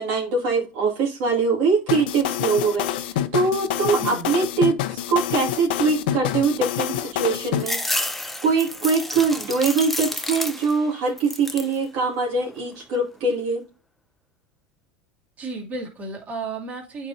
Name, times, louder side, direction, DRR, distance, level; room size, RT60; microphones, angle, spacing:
voice 1, 0.0-7.8 8.4-13.6, right 4 dB, 65° right, -2 dB, 2.3 m, -23 dB
sound 1, 1.9-7.6, left 12 dB, 80° left, 0.6 m, -26 dB
voice 2, 4.0-4.3 15.4-17.1, right 3 dB, 30° right, 0 dB, 2.5 m, -33 dB
sound 2, 7.6-10.9 11.2-11.8 12.2-13.0, left 1 dB, 5° left, 0.7 m, -30 dB
8.5 x 4.6 x 2.7 m, 0.32 s
supercardioid pair, 120°, 5 cm